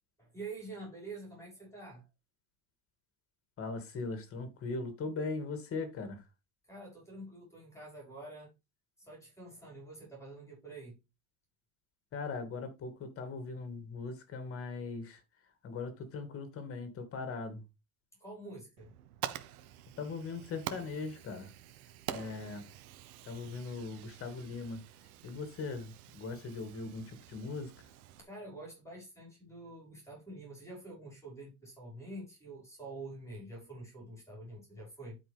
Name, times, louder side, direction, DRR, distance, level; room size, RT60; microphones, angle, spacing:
voice 1, 0.2-2.0 6.6-8.5 9.0-11.0 18.2-18.9 28.2-35.2, right 2 dB, 5° left, 5.8 m, -47 dB
voice 2, 3.6-6.2 12.1-15.2 15.6-17.6 20.0-21.5 22.1-22.7 23.2-24.8 25.2-27.7, left 4 dB, 30° left, 2.5 m, -40 dB
Fire, 18.8-28.2, right 12 dB, 80° right, 1.2 m, -46 dB
12.0 x 5.2 x 3.5 m
supercardioid pair, 135°, 43 cm